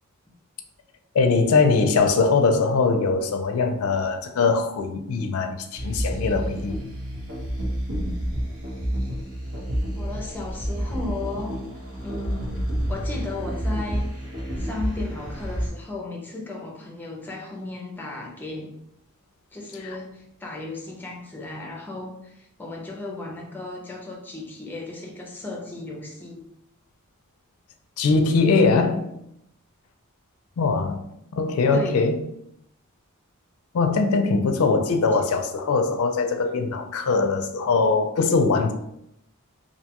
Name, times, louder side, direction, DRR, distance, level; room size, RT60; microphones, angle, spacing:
voice 1, 1.1-6.8 28.0-29.1 30.6-31.0 31.3-32.2 33.7-38.7, left 4 dB, 75° left, 6 dB, 0.4 m, -21 dB
sound 1, 5.7-15.7, equal, 75° right, 0.9 m, -29 dB
voice 2, 9.9-11.6 12.0-14.3 14.6-18.7 19.5-26.4 31.7-32.0 35.1-35.3, left 2 dB, 10° left, -1 dB, 0.5 m, -35 dB
2.6 x 2.2 x 2.8 m, 0.78 s
head